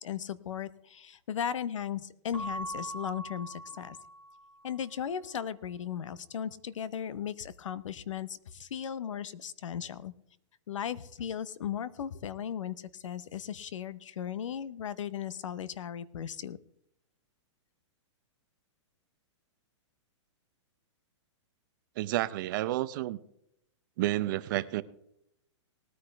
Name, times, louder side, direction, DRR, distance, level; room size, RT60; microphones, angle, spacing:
voice 1, 0.0-4.0 4.6-10.1 10.7-16.6, left 9 dB, 85° left, 18 dB, 0.9 m, -37 dB
Keyboard (musical) / Bell, 2.3-4.8, right 1 dB, 35° left, 3.3 m, -41 dB
voice 2, 22.0-23.2 24.0-24.8, right 15 dB, 40° right, 15 dB, 0.7 m, -30 dB
19.0 x 9.6 x 3.4 m, 0.77 s
hypercardioid pair, 160°, 16 cm